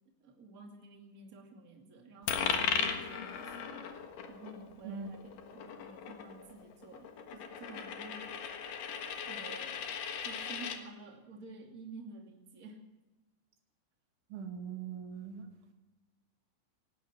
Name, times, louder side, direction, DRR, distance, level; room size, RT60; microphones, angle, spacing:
voice 1, 0.2-3.8 4.3-8.4 9.3-9.8 10.2-12.8, right 3 dB, 45° right, 2 dB, 1.1 m, -51 dB
Coin (dropping), 2.3-10.8, left 7 dB, 65° left, 2.2 m, -37 dB
voice 2, 14.3-15.5, right 6 dB, 70° right, 4 dB, 4.2 m, -41 dB
18.5 x 18.0 x 4.4 m, 1.1 s
omnidirectional pair, 6.0 m